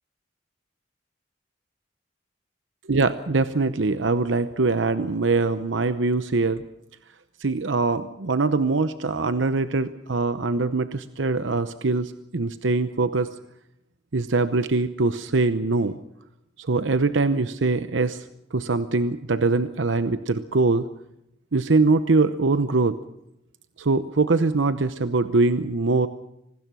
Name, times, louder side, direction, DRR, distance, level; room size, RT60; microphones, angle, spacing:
voice 1, 2.9-6.6 7.4-13.3 14.1-16.0 16.6-18.3 18.5-20.9 21.5-23.0 23.8-26.1, right 3 dB, 90° right, 11 dB, 0.8 m, -23 dB
26.0 x 19.5 x 6.1 m, 0.83 s
head